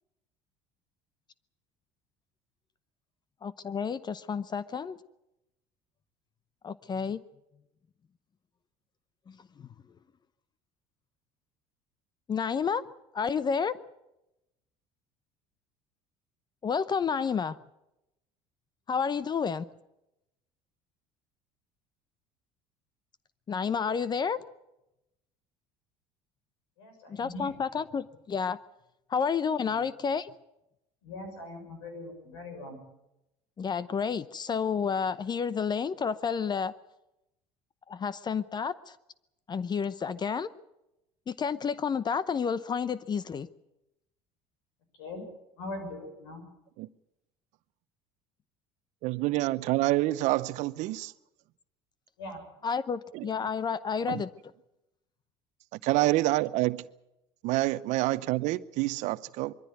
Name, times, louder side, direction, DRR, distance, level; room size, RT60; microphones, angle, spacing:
voice 1, 3.4-5.0 6.6-7.2 9.3-9.7 12.3-12.8 13.1-13.8 16.6-17.6 18.9-19.6 23.5-24.4 27.1-28.6 29.1-30.3 33.6-36.7 37.9-39.0 39.5-40.5 41.3-43.5 52.6-54.3, left 6 dB, 35° left, 0.8 m, -30 dB
voice 2, 26.8-27.5 29.7-29.8 31.0-32.8 45.0-45.2 45.6-46.4 52.2-52.4, left 2 dB, 85° left, 6.4 m, -41 dB
voice 3, 49.0-51.1 53.1-53.2 54.1-54.2 55.8-56.8 57.4-59.5, right 18 dB, 65° right, 0.7 m, -27 dB
22.5 x 14.5 x 9.5 m
hypercardioid pair, 75°, 13 cm